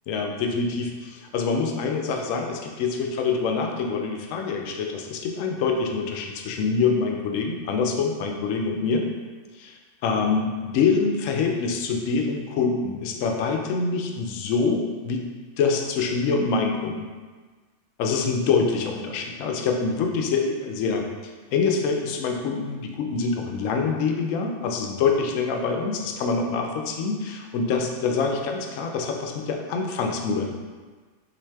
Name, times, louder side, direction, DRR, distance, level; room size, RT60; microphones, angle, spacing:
voice 1, 0.1-9.1 9.5-9.8 10.0-15.3 15.6-17.1 18.0-21.1 21.5-30.5, left 4 dB, 65° left, 2 dB, 0.9 m, -25 dB
5.8 x 2.6 x 3.4 m, 1.4 s
omnidirectional pair, 1.6 m